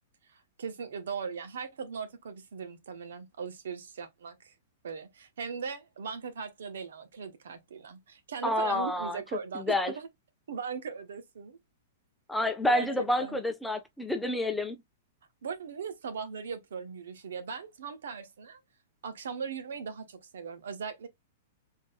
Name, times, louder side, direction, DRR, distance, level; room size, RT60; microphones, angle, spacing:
voice 1, 0.3-4.5 4.8-10.1 10.5-11.6 12.6-13.4 15.4-18.6 19.0-21.1, right 6 dB, 80° right, 1.0 m, -39 dB
voice 2, 8.4-9.2 9.5-9.9 12.3-14.8, left 1 dB, 5° left, 0.7 m, -29 dB
3.8 x 3.6 x 2.2 m
hypercardioid pair, 130°, 0 cm